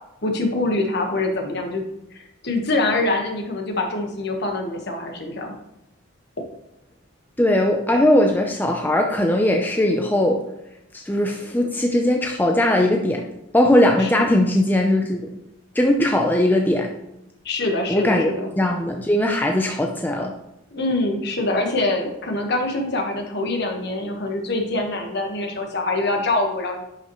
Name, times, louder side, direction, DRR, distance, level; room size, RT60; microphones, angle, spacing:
voice 1, 0.2-1.8 2.1-5.6 14.0-14.3 17.4-18.5 20.7-26.8, left 2 dB, 55° left, 3 dB, 1.3 m, -24 dB
voice 2, 7.4-10.4 10.9-13.2 13.5-15.3 15.7-16.9 17.9-18.3 18.6-20.3, left 1 dB, 10° left, 2 dB, 0.5 m, -19 dB
10.5 x 5.6 x 3.1 m, 0.85 s
head